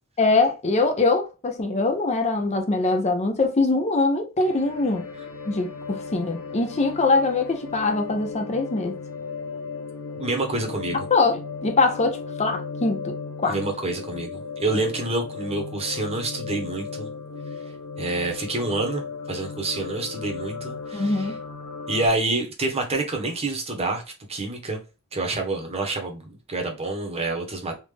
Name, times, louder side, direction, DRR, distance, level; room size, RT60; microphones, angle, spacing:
voice 1, 0.2-5.1 5.4-9.0 11.1-13.6 20.9-21.3, left 3 dB, 30° left, 0.6 m, -23 dB
sound 1, 4.4-22.1, left 4 dB, 75° left, 1.0 m, -36 dB
voice 2, 10.2-11.0 13.5-17.1 18.0-21.3 21.9-24.0 24.3-24.8 25.1-27.7, right 2 dB, 30° right, 1.0 m, -27 dB
3.6 x 2.5 x 3.2 m
head